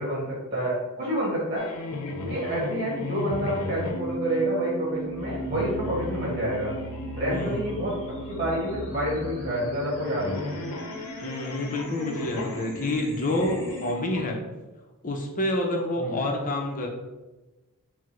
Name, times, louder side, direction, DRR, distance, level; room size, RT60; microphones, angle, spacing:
voice 1, 0.0-1.7 2.2-6.7 7.2-7.9 8.2-10.5 16.0-16.2, right 1 dB, 25° right, -7 dB, 1.4 m, -28 dB
sound 1, 1.6-4.5 5.1-14.2, left 2 dB, 85° left, 0.6 m, -37 dB
sound 2, 3.9-13.9, right 1 dB, 10° left, 1.4 m, -39 dB
sound 3, 5.5-12.7, right 5 dB, 80° right, 0.7 m, -46 dB
voice 2, 7.3-7.7 11.2-14.4 15.0-16.9, left 1 dB, 35° left, 1 dB, 0.5 m, -28 dB
4.6 x 2.0 x 4.3 m, 1.1 s
head